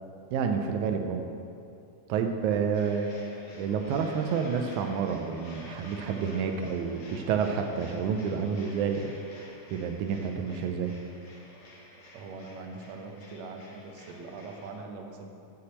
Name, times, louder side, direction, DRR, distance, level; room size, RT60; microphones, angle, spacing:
voice 1, 0.3-1.3 2.1-9.1 9.7-11.0, right 6 dB, 90° right, 5 dB, 2.0 m, -29 dB
sound 1, 2.7-14.7, left 1 dB, 60° left, 2.6 m, -50 dB
voice 2, 12.1-15.4, right 3 dB, 75° right, 3 dB, 2.1 m, -42 dB
8.0 x 5.8 x 7.6 m, 2.6 s
omnidirectional pair, 3.3 m